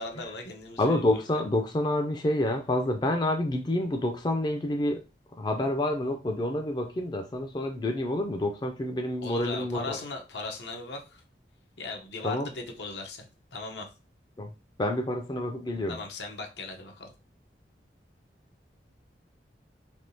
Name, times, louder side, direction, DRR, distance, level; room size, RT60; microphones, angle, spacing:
voice 1, 0.0-1.2 9.2-11.2 11.8-13.3 13.5-13.9 15.9-17.1, left 3 dB, 80° left, 3 dB, 0.8 m, -38 dB
voice 2, 0.8-5.0 5.4-10.0 12.2-12.5 14.4-14.5 14.8-16.0, left 1 dB, 25° left, 3 dB, 0.4 m, -28 dB
3.5 x 2.7 x 2.6 m, 0.30 s
head